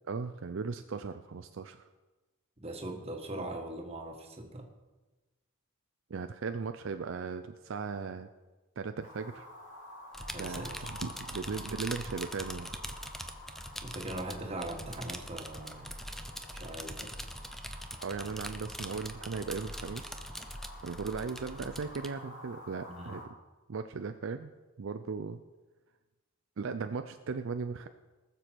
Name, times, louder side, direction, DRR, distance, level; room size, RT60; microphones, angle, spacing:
voice 1, 0.1-1.8 6.1-8.3 8.8-9.5 10.4-12.7 18.0-20.2 20.8-23.3 23.7-24.5 24.8-25.4 26.6-27.9, right 5 dB, 65° right, 8 dB, 0.5 m, -37 dB
voice 2, 2.6-4.7 10.3-10.9 13.8-16.0 16.5-17.1 22.9-23.2, right 1 dB, 30° right, 3 dB, 1.4 m, -40 dB
sound 1, 9.0-23.2, left 1 dB, 60° left, 2.7 m, -50 dB
sound 2, 10.1-22.1, equal, ahead, 0.5 m, -43 dB
19.5 x 6.9 x 4.6 m, 1.2 s
head